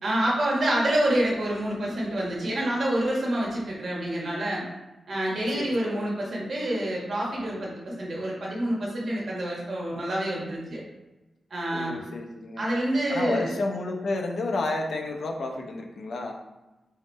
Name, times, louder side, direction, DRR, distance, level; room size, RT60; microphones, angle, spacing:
voice 1, 0.0-4.6 5.1-10.8 11.5-12.0 12.6-13.5, right 1 dB, 50° right, -4 dB, 1.5 m, -27 dB
voice 2, 5.5-6.1 11.7-12.6 13.1-16.3, left 2 dB, 70° left, 2 dB, 0.7 m, -31 dB
3.9 x 3.1 x 4.1 m, 1.1 s
wide cardioid pair, 130°, 0 cm